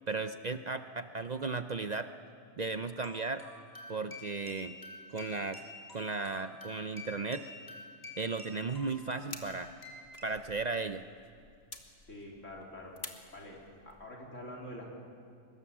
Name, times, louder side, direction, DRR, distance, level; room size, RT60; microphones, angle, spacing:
voice 1, 0.1-2.1 2.6-3.4 3.9-4.7 5.1-5.6 5.9-7.4 8.2-9.7 10.2-11.0, right 4 dB, 45° right, 9 dB, 0.6 m, -35 dB
sound 1, 3.0-10.2, left 2 dB, 15° left, 3.8 m, -49 dB
sound 2, 8.7-14.1, left 4 dB, 55° left, 1.8 m, -51 dB
voice 2, 11.9-12.9 13.3-13.6 13.8-14.9, left 1 dB, 75° left, -2 dB, 4.0 m, -46 dB
24.5 x 20.5 x 7.3 m, 2.3 s
omnidirectional pair, 1.3 m